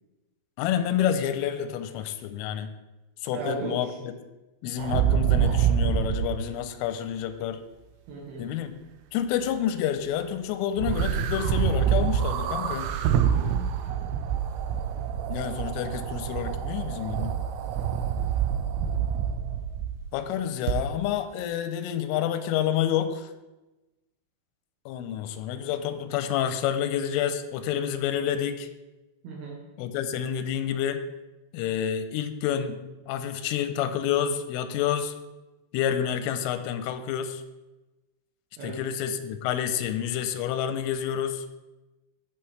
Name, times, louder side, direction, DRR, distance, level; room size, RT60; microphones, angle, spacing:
voice 1, 0.6-2.7 3.2-4.1 4.6-7.6 8.4-8.7 9.1-12.9 15.3-17.3 20.1-23.3 24.9-28.7 29.8-31.0 31.5-32.8 33.1-35.1 35.7-37.4 38.6-41.5, left 9 dB, 90° left, 10 dB, 3.1 m, -28 dB
voice 2, 3.3-3.8 8.1-8.5 13.1-13.7 29.2-29.6 38.6-38.8, right 3 dB, 75° right, -1 dB, 2.4 m, -36 dB
sound 1, 4.8-6.4 10.8-20.1 20.7-20.8, right 9 dB, 90° right, 3.2 m, -26 dB
14.5 x 5.8 x 3.2 m, 1.1 s
omnidirectional pair, 5.7 m